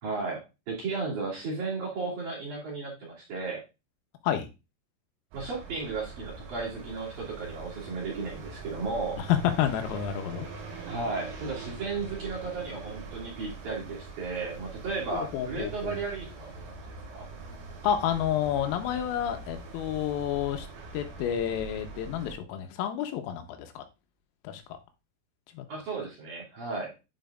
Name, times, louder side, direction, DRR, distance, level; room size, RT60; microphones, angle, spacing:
voice 1, 0.0-3.6 5.3-9.2 10.9-16.8 17.1-17.2 25.7-26.9, right 4 dB, 45° right, -4 dB, 3.5 m, -34 dB
sound 1, 5.3-22.4, right 3 dB, 90° right, 4.9 m, -43 dB
voice 2, 9.2-10.5 15.1-16.0 17.8-20.7 20.9-23.8 24.5-24.6 25.6-25.7, left 10 dB, 90° left, 6 dB, 3.6 m, -29 dB
11.5 x 5.1 x 2.5 m, 0.26 s
omnidirectional pair, 6.0 m